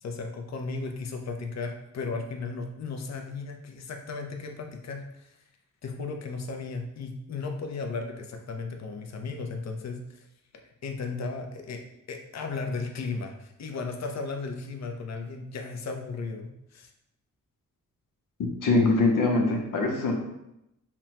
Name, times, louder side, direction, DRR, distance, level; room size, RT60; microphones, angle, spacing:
voice 1, 0.0-5.3 5.8-10.3 10.8-11.8 12.1-16.9, left 4 dB, 60° left, 3 dB, 0.6 m, -35 dB
voice 2, 18.4-20.1, left 3 dB, 90° left, 1 dB, 0.8 m, -23 dB
5.8 x 2.1 x 2.9 m, 0.85 s
wide cardioid pair, 105°, 31 cm